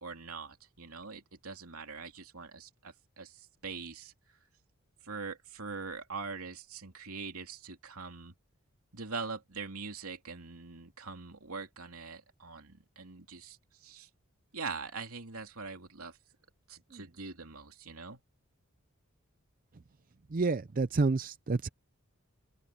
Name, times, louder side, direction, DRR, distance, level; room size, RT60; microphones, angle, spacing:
voice 1, 0.0-4.1 5.0-8.3 8.9-14.1 14.5-16.2 16.7-18.2, right 4 dB, 90° right, 3.0 m, -43 dB
voice 2, 20.3-21.7, right 3 dB, 40° right, 0.5 m, -29 dB
head